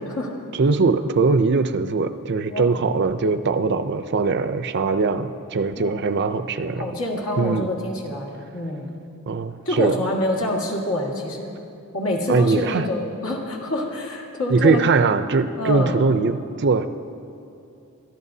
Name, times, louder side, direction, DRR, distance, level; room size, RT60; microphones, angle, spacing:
voice 1, 0.6-6.9 7.4-7.7 9.3-10.0 12.3-12.8 14.5-16.9, right 4 dB, 55° right, 10 dB, 0.5 m, -21 dB
voice 2, 2.5-2.8 5.8-6.0 6.8-8.9 9.7-11.5 11.9-14.9 15.6-16.0, left 1 dB, 70° left, -1 dB, 2.0 m, -26 dB
25.0 x 13.0 x 2.7 m, 2.7 s
head